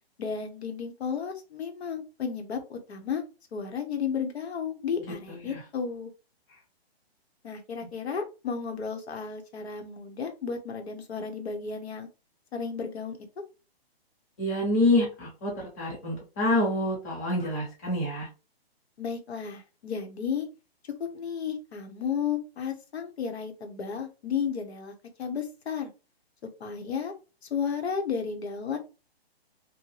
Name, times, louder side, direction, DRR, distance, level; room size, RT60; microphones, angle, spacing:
voice 1, 0.2-3.2 3.5-6.1 7.4-12.1 12.5-13.2 19.0-20.5 21.0-24.9 25.2-25.9 26.6-27.1 27.5-28.8, left 6 dB, 90° left, 5 dB, 0.9 m, -33 dB
voice 2, 14.4-18.3, left 1 dB, 15° left, -3 dB, 0.7 m, -27 dB
2.7 x 2.1 x 3.1 m, 0.31 s
hypercardioid pair, 170°, 31 cm